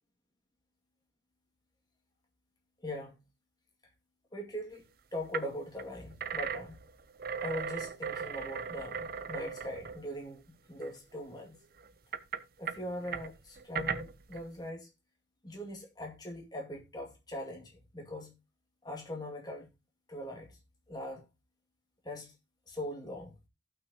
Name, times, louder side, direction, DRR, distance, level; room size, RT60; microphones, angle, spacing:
voice 1, 2.8-3.2 4.3-4.8 5.1-6.8 7.4-11.6 12.6-14.9 15.4-18.3 18.8-19.7 20.1-20.6 20.9-21.2 22.0-22.3 22.7-23.3, left 1 dB, 20° left, 2.3 m, -41 dB
sound 1, 4.8-4.9 5.3-5.5 5.8-10.4 10.8-10.9 11.8-14.4, right 6 dB, 55° right, 0.7 m, -38 dB
16.5 x 6.0 x 2.9 m
head